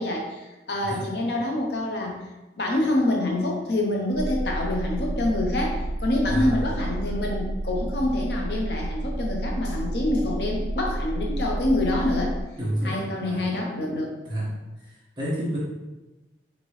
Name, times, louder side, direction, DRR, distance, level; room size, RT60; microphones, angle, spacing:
voice 1, 0.0-2.2 2.6-12.3 12.8-14.2, left 1 dB, 65° left, 0 dB, 0.8 m, -26 dB
sound 1, 4.1-12.4, right 1 dB, 90° right, 0.6 m, -30 dB
voice 2, 12.6-13.4 14.2-14.5 14.8-15.6, right 1 dB, 25° right, -8 dB, 1.4 m, -30 dB
5.2 x 2.9 x 3.2 m, 1.1 s
head